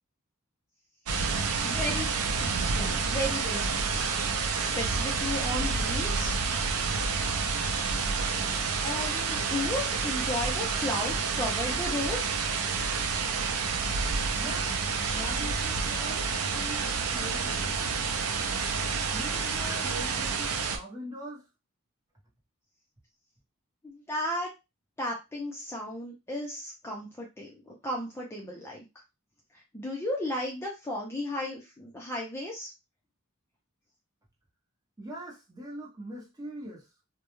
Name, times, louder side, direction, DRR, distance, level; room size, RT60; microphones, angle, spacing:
sound 1, 1.1-20.8, right 5 dB, 75° right, 0.5 m, -29 dB
voice 1, 1.6-4.1 4.4-6.3 8.8-12.2 23.8-24.5 25.0-28.9 29.7-32.7, left 1 dB, 10° left, 0.5 m, -34 dB
voice 2, 14.3-17.6 19.0-21.5 35.0-36.9, equal, 15° right, 0.8 m, -42 dB
2.2 x 2.1 x 2.9 m
head